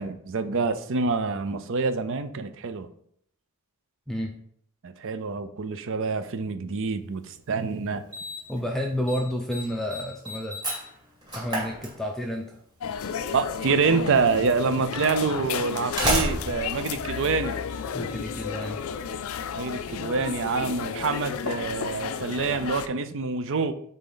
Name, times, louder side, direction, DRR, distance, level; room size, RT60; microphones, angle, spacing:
voice 1, 0.0-2.9 4.8-8.0 13.3-17.6 19.5-23.7, right 4 dB, 60° right, 0.5 m, -26 dB
Slam, 7.3-7.4 8.1-8.6 8.9-9.2 9.5-12.4 13.6-13.7 14.5-14.6 15.6-17.9, equal, 20° right, 2.3 m, -30 dB
voice 2, 8.5-10.6 11.3-12.6 17.9-18.9, equal, ahead, 0.5 m, -30 dB
sound 1, 12.8-22.9, left 7 dB, 65° left, 0.4 m, -33 dB
7.3 x 4.1 x 3.9 m
head